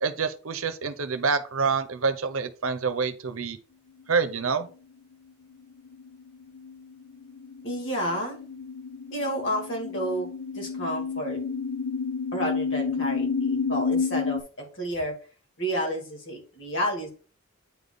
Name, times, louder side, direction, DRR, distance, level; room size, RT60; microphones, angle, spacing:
voice 1, 0.0-3.6 4.1-4.7, right 5 dB, 75° right, 11 dB, 0.8 m, -27 dB
sound 1, 5.8-14.4, left 5 dB, 80° left, 0.9 m, -30 dB
voice 2, 7.6-8.4 9.1-10.3 10.5-11.4 12.3-14.4 14.7-15.1 15.6-17.1, equal, 55° left, 0 dB, 2.5 m, -30 dB
8.9 x 3.5 x 4.0 m, 0.38 s
head